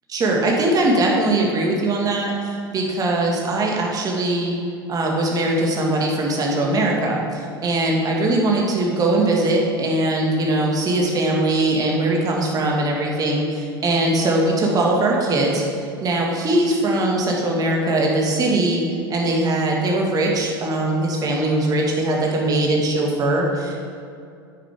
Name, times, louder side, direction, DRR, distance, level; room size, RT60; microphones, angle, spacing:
voice 1, 0.1-4.5 4.9-15.6 16.0-18.8 19.1-23.9, right 2 dB, 30° right, -1 dB, 2.0 m, -21 dB
9.7 x 9.1 x 3.7 m, 2.4 s
figure-of-eight pair, 85°, 13 cm